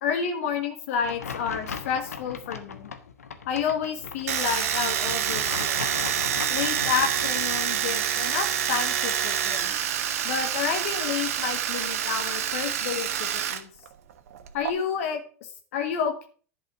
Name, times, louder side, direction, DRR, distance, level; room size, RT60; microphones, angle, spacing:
voice 1, 0.0-2.9 3.5-5.8 6.5-9.7 10.2-13.7 14.5-16.3, left 7 dB, 65° left, 5 dB, 1.6 m, -30 dB
sound 1, 1.0-7.6, left 6 dB, 85° left, 1.2 m, -38 dB
Domestic sounds home sounds, 4.3-13.6 13.9-14.7, right 9 dB, 70° right, 1.2 m, -27 dB
11.0 x 5.5 x 6.8 m, 0.41 s
hypercardioid pair, 90°, 8 cm